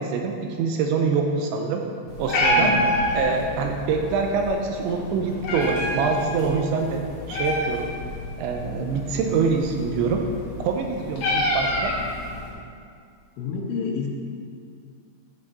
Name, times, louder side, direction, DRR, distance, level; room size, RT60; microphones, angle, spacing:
voice 1, 0.0-1.8 2.2-2.7 3.1-7.0 7.3-7.9 8.4-10.2 10.6-11.9, right 5 dB, 80° right, 2 dB, 2.8 m, -25 dB
Meow, 2.1-12.5, left 1 dB, 55° left, 2.7 m, -28 dB
voice 2, 2.5-3.1 13.4-14.1, left 5 dB, 80° left, 1 dB, 3.1 m, -29 dB
11.5 x 5.8 x 4.1 m, 2.3 s
omnidirectional pair, 5.5 m